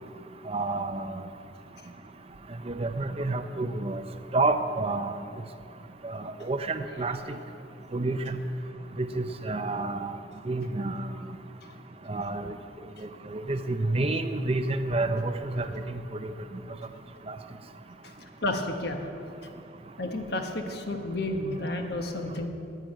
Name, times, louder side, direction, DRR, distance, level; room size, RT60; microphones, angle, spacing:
voice 1, 0.5-1.2 2.7-4.0 4.3-5.2 6.0-7.2 7.9-8.4 9.0-10.1 10.5-11.1 12.1-12.5 13.3-16.3 17.3-17.4, right 2 dB, 30° right, 9 dB, 0.5 m, -29 dB
voice 2, 18.0-19.1 19.4-19.5 20.0-22.5, left 1 dB, 55° left, 4 dB, 1.4 m, -32 dB
11.0 x 9.8 x 8.9 m, 2.8 s
head